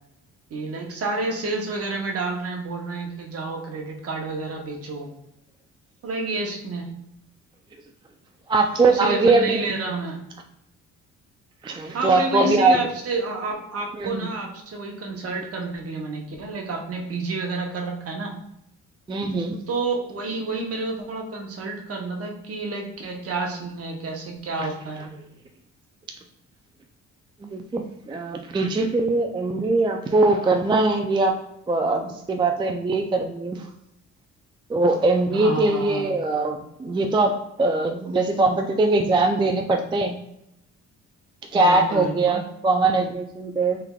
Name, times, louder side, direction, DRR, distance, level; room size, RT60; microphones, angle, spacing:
voice 1, 0.5-5.1 6.0-6.9 8.8-10.2 11.9-18.4 19.7-25.1 35.3-36.1 41.5-42.4, right 3 dB, 50° right, 1 dB, 0.9 m, -29 dB
voice 2, 8.5-9.7 11.6-12.8 14.0-14.3 19.1-19.6 24.6-24.7 27.4-31.4 31.7-33.7 34.7-40.2 41.5-43.8, right 2 dB, 15° right, 4 dB, 0.4 m, -21 dB
3.5 x 3.3 x 2.3 m, 0.81 s
cardioid pair, 90°, 30 cm